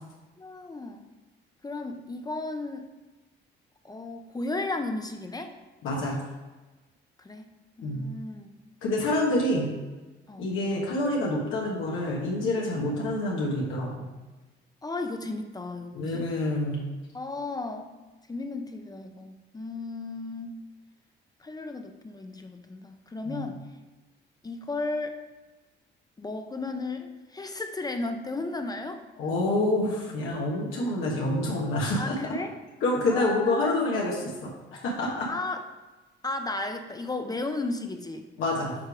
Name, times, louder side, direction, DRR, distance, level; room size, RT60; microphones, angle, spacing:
voice 1, 0.4-1.0 1.6-2.9 3.8-5.6 7.2-7.5 7.8-8.5 10.3-10.5 14.8-16.2 17.1-17.9 18.3-20.6 21.4-23.6 24.4-25.2 26.2-29.0 31.9-32.5 33.1-33.8 35.2-35.6 36.2-38.3, left 2 dB, 20° left, 6 dB, 0.5 m, -34 dB
voice 2, 5.8-6.2 7.8-8.1 8.8-9.8 10.4-14.1 15.9-16.8 23.2-23.5 29.2-32.1 32.8-35.3 38.4-38.7, left 1 dB, 85° left, -4 dB, 1.3 m, -27 dB
7.5 x 3.4 x 4.8 m, 1.2 s
cardioid pair, 90°, 20 cm